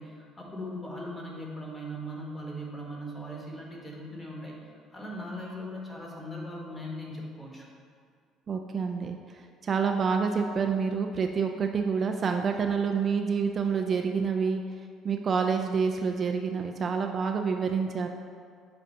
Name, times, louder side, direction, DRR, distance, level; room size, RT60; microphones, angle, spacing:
voice 1, 0.0-4.6 4.9-7.7, equal, 20° left, -2 dB, 1.5 m, -39 dB
voice 2, 8.5-14.6 15.0-18.1, right 5 dB, 45° right, 4 dB, 0.4 m, -28 dB
7.5 x 2.6 x 5.6 m, 2.2 s
hypercardioid pair, 55°, 0 cm